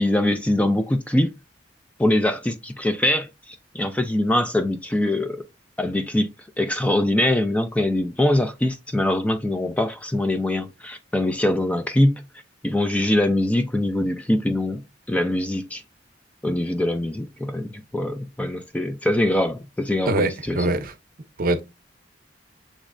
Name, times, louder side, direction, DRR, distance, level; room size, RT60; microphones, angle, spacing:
voice 1, 0.0-1.3 2.0-5.4 5.8-6.3 6.6-12.2 12.6-14.8 15.1-15.8 16.4-20.6, left 1 dB, 5° left, 0.3 m, -23 dB
voice 2, 20.1-20.9 21.4-21.6, right 2 dB, 50° right, 0.7 m, -23 dB
6.2 x 3.1 x 2.5 m
head